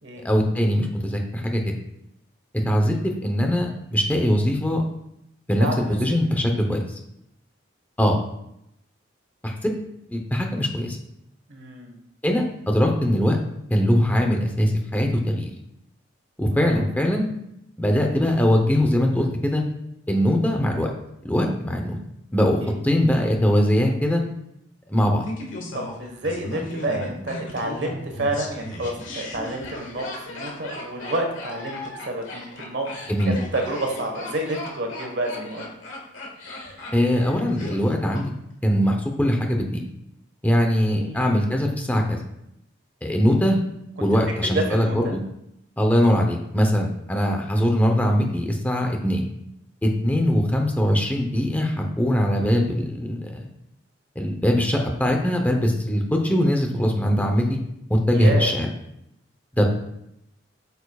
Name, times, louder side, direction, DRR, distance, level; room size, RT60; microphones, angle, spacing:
voice 1, 0.2-1.7 2.6-3.0 3.2-4.8 5.5-7.0 8.0-8.2 9.4-9.8 10.1-11.0 12.2-13.4 13.7-15.5 16.4-17.3 17.8-19.6 20.1-20.9 21.2-22.0 22.3-22.6 22.8-24.2 24.9-25.3 33.1-33.4 36.9-38.3 38.6-39.8 40.4-42.2 43.0-43.6 44.0-45.2 45.8-49.2 49.8-53.5 54.2-57.6 57.9-58.7 59.6-59.7, equal, 10° left, 2 dB, 0.8 m, -21 dB
voice 2, 5.6-6.0 11.5-12.0 16.5-16.8 22.6-22.8 25.7-31.8 32.1-32.9 33.3-35.7 40.9-41.3 44.0-44.1 44.4-45.1 50.1-50.4 58.1-58.6, right 1 dB, 65° right, 3 dB, 1.3 m, -29 dB
Laughter, 25.2-38.2 38.5-38.6, left 2 dB, 80° left, 1.6 m, -36 dB
8.8 x 6.9 x 2.4 m, 0.80 s
head